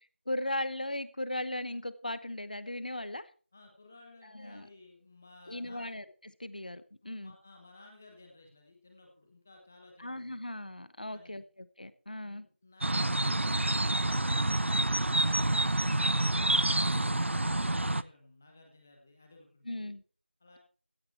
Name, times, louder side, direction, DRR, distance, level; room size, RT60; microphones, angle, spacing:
voice 1, 0.3-3.3 4.3-4.7 5.5-7.3 10.0-12.5 19.6-20.0, left 1 dB, 45° left, 1.0 m, -37 dB
voice 2, 3.5-5.9 7.0-10.4 11.1-11.4 12.2-19.9 20.4-20.6, left 2 dB, 10° left, 1.1 m, -56 dB
sound 1, 12.8-18.0, right 1 dB, 80° right, 0.6 m, -28 dB
15.5 x 9.5 x 4.4 m
figure-of-eight pair, 175°, 6 cm